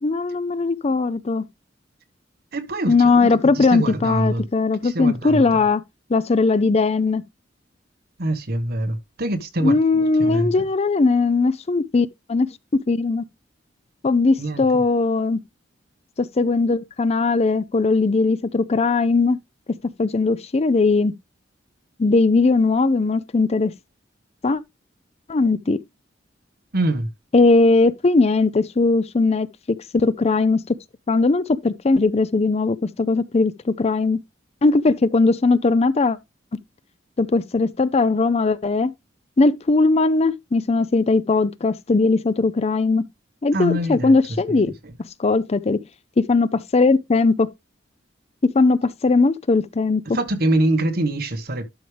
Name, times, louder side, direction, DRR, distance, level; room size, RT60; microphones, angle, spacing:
voice 1, 0.0-1.4 2.9-5.8 6.1-7.2 9.6-13.2 14.0-15.4 16.2-19.4 20.0-21.1 22.0-23.7 24.4-24.6 25.3-25.8 27.3-30.6 31.1-34.2 34.6-36.2 37.2-38.9 39.4-43.0 43.4-44.7 45.2-45.8 46.2-47.5 48.4-50.0, left 3 dB, 35° left, 0.5 m, -19 dB
voice 2, 2.5-4.5 4.8-5.6 8.2-10.7 14.4-14.6 26.7-27.1 43.5-44.1 44.5-44.6 44.8-44.9 50.1-51.7, right 1 dB, 55° right, 1.4 m, -24 dB
12.0 x 4.9 x 3.3 m
head